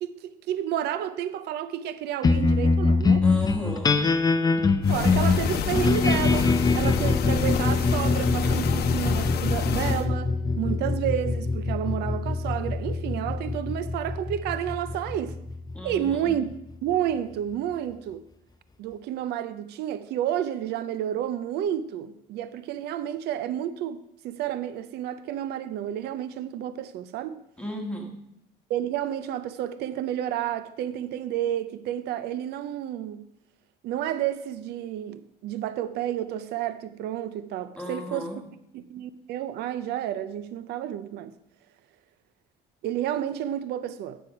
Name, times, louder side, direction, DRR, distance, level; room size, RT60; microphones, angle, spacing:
voice 1, 0.0-3.3 4.9-15.4 15.8-16.6 16.8-18.2 18.8-27.4 28.7-33.3 33.8-38.4 38.7-41.3 42.8-44.2, right 11 dB, 75° right, 0.6 m, -30 dB
sound 1, 2.2-16.9, left 3 dB, 25° left, 0.6 m, -24 dB
voice 2, 3.2-4.1 15.7-16.4 27.6-28.2 37.8-38.4, equal, 5° left, 1.4 m, -35 dB
sound 2, 4.8-10.1, left 7 dB, 70° left, 0.8 m, -30 dB
9.4 x 8.1 x 4.9 m
cardioid pair, 110°, 17 cm